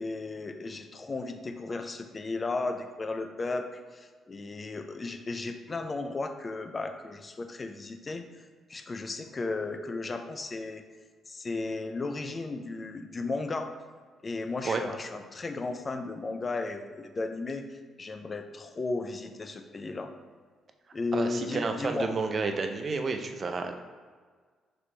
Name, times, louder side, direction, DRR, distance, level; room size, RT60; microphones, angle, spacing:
voice 1, 0.0-10.8 11.3-13.7 14.2-20.1 20.9-22.2, left 3 dB, 30° left, 7 dB, 0.4 m, -35 dB
voice 2, 21.1-23.8, right 4 dB, 40° right, 5 dB, 0.4 m, -30 dB
4.1 x 3.0 x 3.2 m, 1.5 s
cardioid pair, 90°, 0 cm